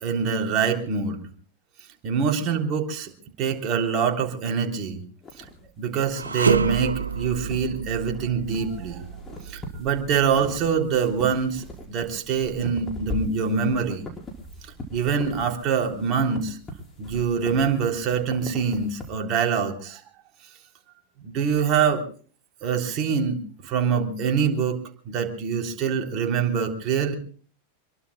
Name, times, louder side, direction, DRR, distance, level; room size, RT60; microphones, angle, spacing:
voice 1, 0.0-1.2 2.0-3.1 3.4-5.0 5.8-9.1 9.5-14.1 14.9-16.6 17.0-20.0 21.2-22.0 22.6-24.8 25.1-27.1, right 6 dB, 35° right, 3 dB, 3.5 m, -25 dB
sound 1, 5.2-19.1, equal, 15° left, 5.4 m, -41 dB
sound 2, 6.1-15.4 15.8-16.0 16.8-17.7, right 5 dB, 75° right, 0.7 m, -31 dB
27.0 x 22.5 x 2.2 m, 0.43 s
figure-of-eight pair, 90°, 0 cm